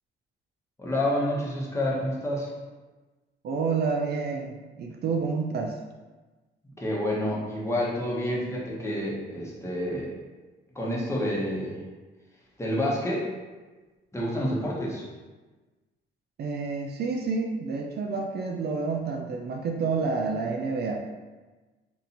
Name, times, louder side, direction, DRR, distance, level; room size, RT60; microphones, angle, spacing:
voice 1, 0.8-2.5 6.8-10.1 10.7-11.8 12.6-13.3 14.1-15.0, left 1 dB, 15° left, -5 dB, 1.0 m, -28 dB
voice 2, 3.4-5.8 16.4-21.1, right 4 dB, 55° right, 2 dB, 0.4 m, -29 dB
2.7 x 2.6 x 4.2 m, 1.2 s
cardioid pair, 90°, 20 cm